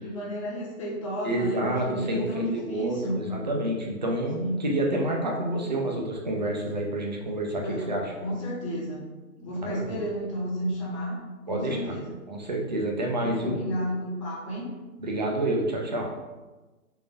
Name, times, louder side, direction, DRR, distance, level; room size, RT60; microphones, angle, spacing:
voice 1, 0.0-3.3 4.4-4.7 7.5-9.0 9.4-11.2 11.5-12.1 13.2-14.7, equal, 20° left, -5 dB, 0.7 m, -32 dB
voice 2, 1.2-8.1 9.6-10.0 11.5-11.9 12.3-13.5 15.0-16.1, right 1 dB, 30° right, 0 dB, 0.4 m, -28 dB
3.8 x 2.5 x 3.8 m, 1.2 s
hypercardioid pair, 160°, 45 cm